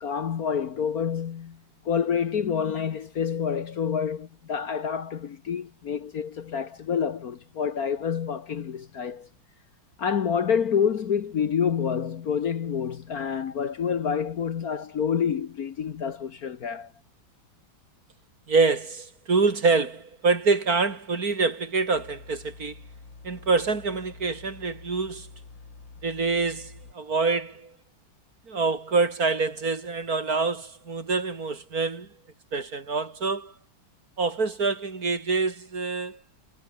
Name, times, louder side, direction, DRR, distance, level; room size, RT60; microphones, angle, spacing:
voice 1, 0.0-1.6 1.8-9.3 10.0-16.9, left 7 dB, 55° left, 1.5 m, -28 dB
voice 2, 18.5-22.8 23.2-25.3 26.0-27.7 28.5-32.1 32.5-33.5 34.2-36.2, right 4 dB, 50° right, 3.1 m, -26 dB
sound 1, 21.9-26.9, left 4 dB, 70° left, 4.8 m, -47 dB
omnidirectional pair, 2.1 m